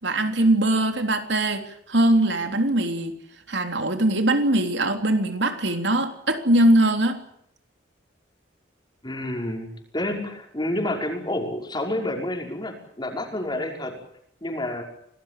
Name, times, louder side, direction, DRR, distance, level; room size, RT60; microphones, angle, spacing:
voice 1, 0.0-3.1 3.5-7.2, right 1 dB, 70° right, 6 dB, 3.5 m, -21 dB
voice 2, 9.0-14.0 14.4-14.8, left 1 dB, 25° left, 2 dB, 5.6 m, -29 dB
27.0 x 19.0 x 7.6 m, 0.71 s
head